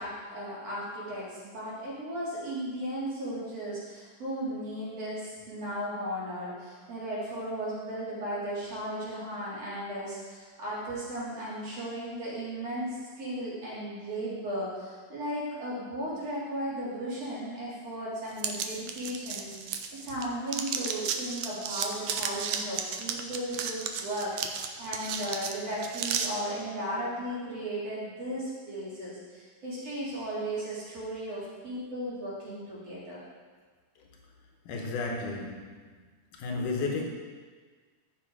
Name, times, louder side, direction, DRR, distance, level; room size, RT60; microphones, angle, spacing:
voice 1, 0.0-33.2, right 1 dB, 50° right, -8 dB, 4.3 m, -36 dB
sound 1, 18.4-20.2 20.5-26.3, right 7 dB, 75° right, 1.9 m, -33 dB
voice 2, 34.7-36.0 36.3-37.0, left 3 dB, 85° left, 1 dB, 2.6 m, -33 dB
14.5 x 6.1 x 4.8 m, 1.5 s
omnidirectional pair, 3.6 m